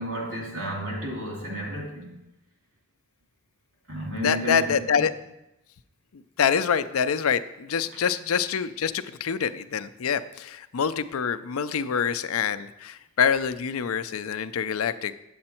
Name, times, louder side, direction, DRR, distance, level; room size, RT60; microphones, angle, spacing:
voice 1, 0.0-2.2 3.9-4.8, equal, 70° right, -1 dB, 2.6 m, -32 dB
voice 2, 4.2-5.1 6.1-15.1, left 7 dB, 80° left, 13 dB, 0.5 m, -26 dB
8.6 x 7.9 x 4.4 m, 0.89 s
head